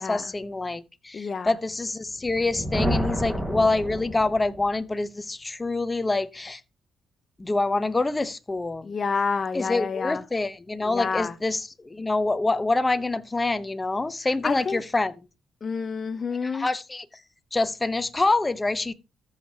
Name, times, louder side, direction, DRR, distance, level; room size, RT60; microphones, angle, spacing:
voice 1, 0.0-6.6 7.4-8.9 9.5-15.1 16.4-17.1 17.5-18.9, left 2 dB, 20° left, 1.0 m, -26 dB
voice 2, 1.1-1.5 8.8-10.2 10.8-11.3 14.4-14.8 15.6-16.7, left 5 dB, 40° left, 0.7 m, -28 dB
Thunder, 2.1-4.8, equal, 5° right, 1.9 m, -29 dB
14.0 x 7.5 x 2.9 m
cardioid pair, 90°, 0 cm